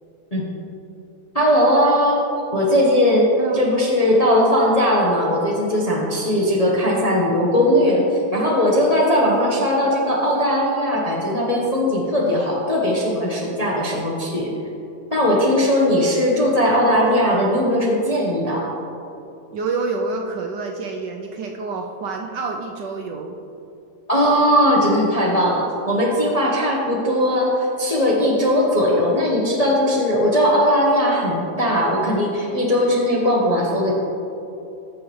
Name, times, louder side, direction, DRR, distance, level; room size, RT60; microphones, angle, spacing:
voice 1, 1.3-2.2 2.5-8.1 8.3-14.5 15.1-18.7 24.1-33.9, equal, 30° left, -4 dB, 0.8 m, -19 dB
voice 2, 19.5-23.3, right 3 dB, 70° right, 2 dB, 1.1 m, -28 dB
14.0 x 6.2 x 3.1 m, 2.9 s
omnidirectional pair, 2.2 m